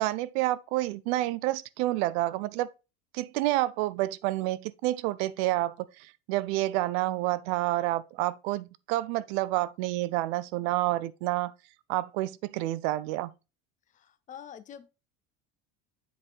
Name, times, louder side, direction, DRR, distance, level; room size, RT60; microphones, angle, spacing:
voice 1, 0.0-2.7 3.1-11.5 11.9-13.3, right 17 dB, 75° right, 0.5 m, -29 dB
voice 2, 13.9-14.9, left 8 dB, 25° left, 0.5 m, -46 dB
7.6 x 4.3 x 3.2 m
supercardioid pair, 115°, 33 cm